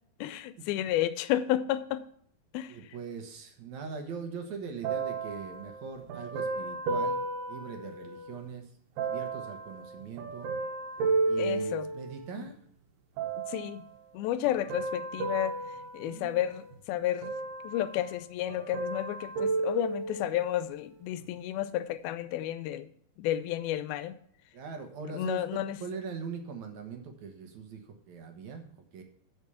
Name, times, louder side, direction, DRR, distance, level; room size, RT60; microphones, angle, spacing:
voice 1, 0.2-2.0 2.5-2.8 11.4-11.9 12.4-12.5 13.5-13.8 14.1-15.6 15.9-17.3 17.6-22.9 23.2-24.2 25.1-25.8, left 12 dB, 80° left, 13 dB, 2.4 m, -31 dB
voice 2, 2.7-8.7 9.0-10.5 11.3-12.6 16.0-16.4 24.5-29.0, right 5 dB, 65° right, 5 dB, 2.0 m, -41 dB
sound 1, 4.8-8.4 9.0-12.5 13.2-13.8 14.4-16.8 17.2-18.2 18.5-20.5 21.2-21.3, right 3 dB, 85° right, 3.2 m, -33 dB
8.1 x 6.8 x 6.9 m, 0.66 s
omnidirectional pair, 4.5 m